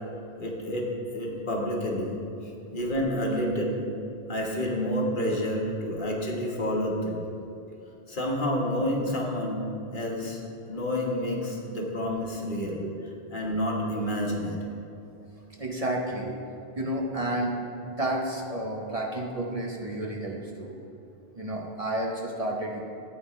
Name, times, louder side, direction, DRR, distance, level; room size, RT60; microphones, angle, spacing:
voice 1, 0.4-2.2 2.7-3.9 4.3-7.2 8.1-9.6 9.9-10.4 10.7-12.8 13.3-14.6, equal, 50° left, -1 dB, 1.5 m, -29 dB
voice 2, 15.6-16.4 16.8-17.6 17.8-20.7 21.4-22.8, right 1 dB, 35° right, -1 dB, 0.9 m, -31 dB
13.5 x 8.7 x 3.2 m, 2.8 s
omnidirectional pair, 1.1 m